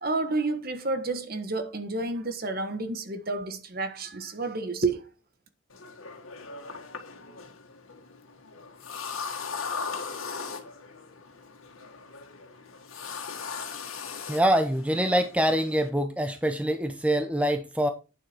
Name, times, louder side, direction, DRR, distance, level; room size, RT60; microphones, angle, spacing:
voice 1, 0.0-5.1, right 3 dB, 45° right, 1.3 m, -30 dB
sound 1, 5.7-15.9, left 5 dB, 85° left, 1.9 m, -39 dB
voice 2, 14.3-17.9, equal, 5° right, 0.6 m, -25 dB
9.2 x 7.5 x 4.4 m
head